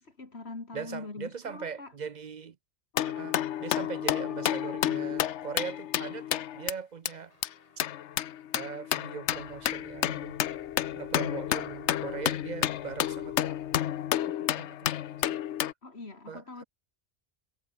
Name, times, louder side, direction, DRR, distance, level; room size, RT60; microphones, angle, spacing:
voice 1, 0.0-1.9 15.8-16.6, left 3 dB, 70° left, 3.1 m, -43 dB
voice 2, 0.7-2.6 3.0-7.3 8.5-10.4 10.9-13.5 14.4-15.0 16.3-16.6, right 6 dB, 50° right, 0.7 m, -40 dB
sound 1, 3.0-6.7 7.1-7.2 7.4-7.5 7.8-15.7, left 11 dB, 90° left, 1.0 m, -31 dB
Guitar, 7.3-15.4, left 1 dB, 35° left, 5.5 m, -68 dB
sound 2, 9.2-14.3, right 1 dB, 30° right, 5.1 m, -60 dB
omnidirectional pair, 1.1 m